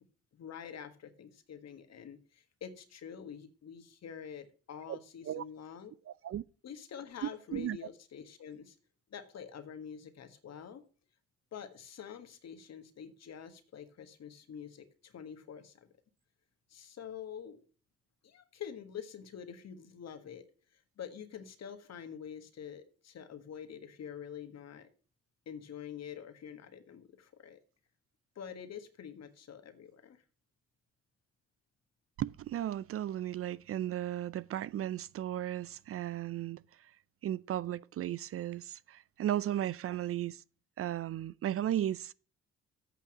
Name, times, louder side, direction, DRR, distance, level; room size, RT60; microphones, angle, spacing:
voice 1, 0.3-5.9 6.6-8.7 9.1-10.8 11.5-15.9 16.7-17.6 18.2-20.4 21.0-24.9 25.4-27.6 28.3-30.2, left 8 dB, 60° left, 1.6 m, -46 dB
voice 2, 6.1-6.4 7.5-7.8 32.2-36.9 37.2-40.4 40.8-42.1, right 12 dB, 50° right, 0.4 m, -35 dB
8.3 x 5.7 x 7.2 m
hypercardioid pair, 50°, 30 cm